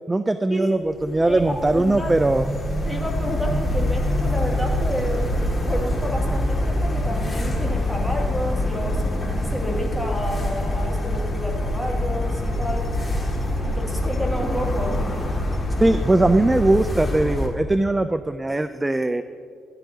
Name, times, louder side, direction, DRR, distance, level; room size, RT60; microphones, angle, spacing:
voice 1, 0.1-2.5 15.8-19.2, right 2 dB, 15° right, 10 dB, 0.4 m, -20 dB
sound 1, 0.9-17.5, left 1 dB, 25° left, 2.0 m, -25 dB
voice 2, 1.2-2.2 2.9-12.9 13.6-15.0, equal, 5° left, -2 dB, 2.3 m, -30 dB
16.0 x 11.0 x 2.8 m, 2.2 s
cardioid pair, 90°, 0 cm